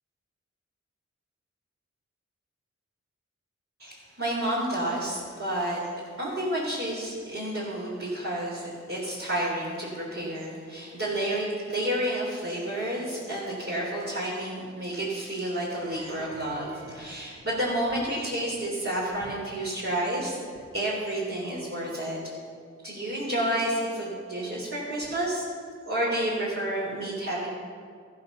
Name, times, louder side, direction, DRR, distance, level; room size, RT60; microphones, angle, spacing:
voice 1, 3.8-5.8 6.2-20.4 20.7-22.2 22.8-25.4 25.9-27.5, right 1 dB, 45° right, -7 dB, 3.4 m, -30 dB
14.0 x 6.6 x 6.9 m, 2.2 s
cardioid pair, 40°, 29 cm